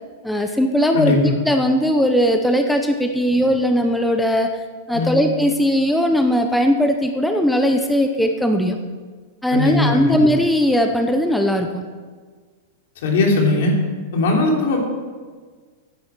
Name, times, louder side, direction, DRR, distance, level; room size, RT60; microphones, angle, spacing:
voice 1, 0.2-1.2 1.4-8.9 9.4-11.8, equal, 5° left, 5 dB, 0.7 m, -19 dB
voice 2, 0.9-1.3 4.9-5.2 9.5-10.3 13.0-13.8 14.1-14.8, left 2 dB, 70° left, 0 dB, 3.3 m, -19 dB
10.5 x 9.6 x 6.1 m, 1.5 s
supercardioid pair, 145°, 0 cm